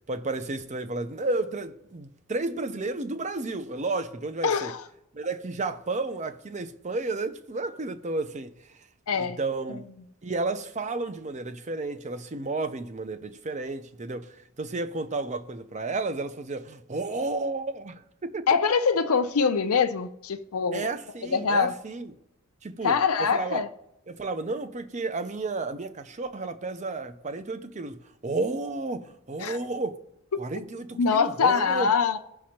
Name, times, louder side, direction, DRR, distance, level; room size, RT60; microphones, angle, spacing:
voice 1, 0.1-4.7 5.1-8.5 9.2-9.9 10.2-18.5 20.7-22.1 22.6-23.6 24.1-30.0 30.4-31.9, right 3 dB, 35° right, 0.6 m, -32 dB
voice 2, 4.4-4.8 9.1-9.4 18.5-20.9 21.3-21.8 22.8-23.7 29.4-29.6 31.0-32.2, left 5 dB, 80° left, 0.6 m, -24 dB
18.5 x 6.2 x 2.9 m
head